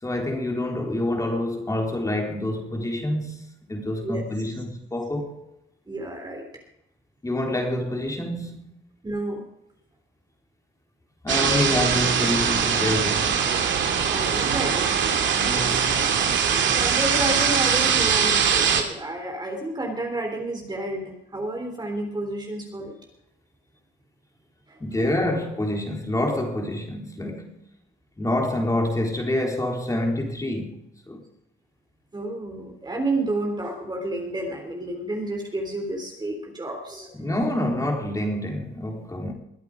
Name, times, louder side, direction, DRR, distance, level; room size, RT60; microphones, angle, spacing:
voice 1, 0.0-5.4 7.2-8.7 11.2-13.6 15.4-16.0 24.8-27.6 28.2-31.2 37.1-39.3, left 1 dB, 15° left, 4.0 m, -27 dB
voice 2, 5.9-6.4 9.0-9.4 14.1-15.0 16.7-22.9 24.7-24.8 32.1-37.1, right 2 dB, 20° right, 3.5 m, -30 dB
sound 1, 11.3-18.8, right 7 dB, 70° right, 2.6 m, -22 dB
22.0 x 8.4 x 5.1 m
cardioid pair, 90°, 20 cm